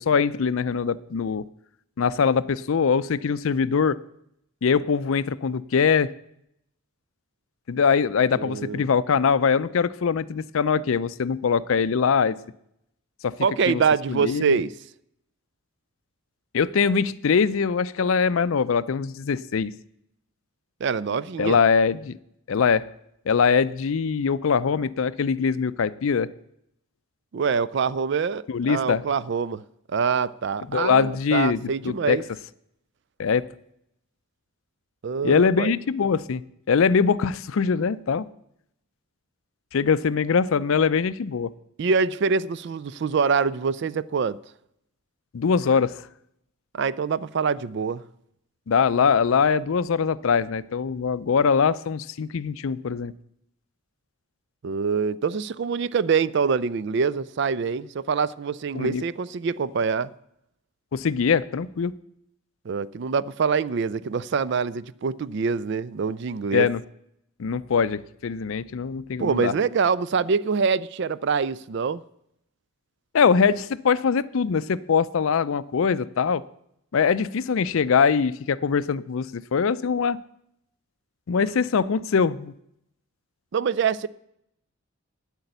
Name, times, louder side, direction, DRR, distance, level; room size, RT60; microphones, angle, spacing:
voice 1, 0.0-1.5 2.0-4.0 4.6-6.1 7.7-12.4 13.2-13.4 13.7-13.8 14.1-14.6 16.5-19.7 21.4-22.2 22.5-22.9 23.3-26.3 28.5-29.0 30.7-32.2 33.2-33.5 35.2-36.4 36.7-38.3 39.7-41.5 45.3-46.0 48.7-53.1 58.7-59.0 60.9-61.9 66.5-66.8 67.4-69.5 73.1-76.4 76.9-80.2 81.3-82.5, left 6 dB, 70° left, 0.4 m, -22 dB
voice 2, 8.3-8.8 13.4-14.7 20.8-21.6 27.3-29.6 29.9-32.2 35.0-35.7 41.8-44.4 46.7-48.0 54.6-60.1 62.7-66.7 69.2-72.0 83.5-84.1, right 5 dB, 55° right, 0.3 m, -25 dB
9.7 x 8.2 x 7.9 m
head